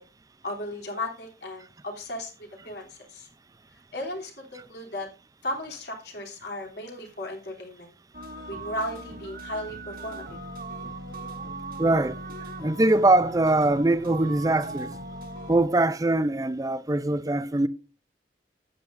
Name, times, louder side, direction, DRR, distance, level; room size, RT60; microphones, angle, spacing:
voice 1, 0.4-2.3 2.6-3.3 3.9-5.1 5.4-7.9 8.5-10.4, left 1 dB, 65° left, 3.1 m, -35 dB
sound 1, 8.1-15.7, right 2 dB, 50° right, 1.8 m, -38 dB
voice 2, 11.8-12.2 12.6-14.9 15.5-17.7, right 2 dB, 20° right, 0.5 m, -22 dB
12.5 x 8.7 x 2.6 m
head